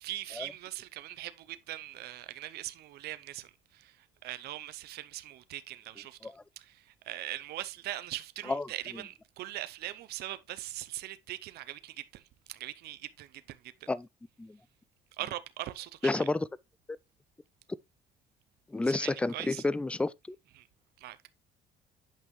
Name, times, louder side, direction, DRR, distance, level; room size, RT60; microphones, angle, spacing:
voice 1, 0.0-4.0 4.2-12.2 12.5-13.9 15.2-16.2 18.9-19.6 20.6-20.7 21.0-21.2, right 15 dB, 70° right, 0.6 m, -41 dB
voice 2, 8.4-9.0 13.9-14.1 14.4-14.6 16.0-16.5 18.7-20.4, left 2 dB, 5° left, 0.3 m, -31 dB
8.5 x 5.5 x 3.1 m
cardioid pair, 110°, 17 cm